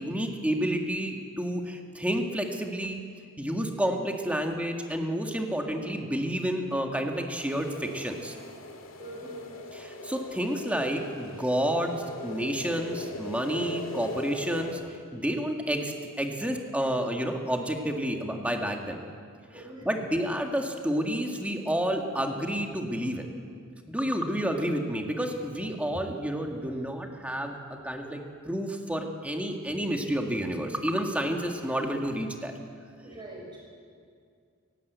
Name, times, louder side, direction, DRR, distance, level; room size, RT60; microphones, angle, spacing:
voice 1, 0.0-3.0 3.4-8.3 9.7-12.0 12.2-14.8 15.1-19.0 19.5-23.3 23.9-28.2 28.5-32.5, equal, 5° right, 3 dB, 1.8 m, -30 dB
sound 1, 7.3-14.7, left 1 dB, 70° left, 2.0 m, -40 dB
voice 2, 9.0-9.4 19.5-19.8 33.0-33.6, right 1 dB, 20° right, -3 dB, 6.7 m, -43 dB
18.0 x 17.5 x 8.1 m, 2.2 s
head